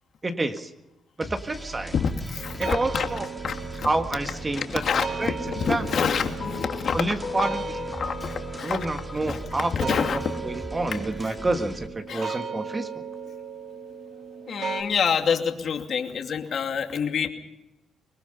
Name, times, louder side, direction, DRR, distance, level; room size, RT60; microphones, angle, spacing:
voice 1, 0.2-0.7 1.2-1.9 2.6-3.3 3.8-4.8 5.2-5.4 5.7-6.1 6.9-7.6 8.6-13.0, right 2 dB, 25° right, 6 dB, 1.7 m, -28 dB
sound 1, 1.2-11.9, right 2 dB, 10° right, 2.6 m, -39 dB
voice 2, 1.9-3.1 3.4-3.9 4.5-7.0 7.4-7.5 8.0-8.8 9.3-9.4 9.7-10.2 11.3-11.4 12.1-12.4 14.5-17.3, left 6 dB, 55° left, 4 dB, 2.6 m, -27 dB
sound 2, 2.4-14.8, right 5 dB, 55° right, 2.9 m, -37 dB
sound 3, 6.4-10.7, left 5 dB, 40° left, 3.0 m, -38 dB
25.0 x 20.5 x 5.6 m, 0.94 s
cardioid pair, 90°, 0 cm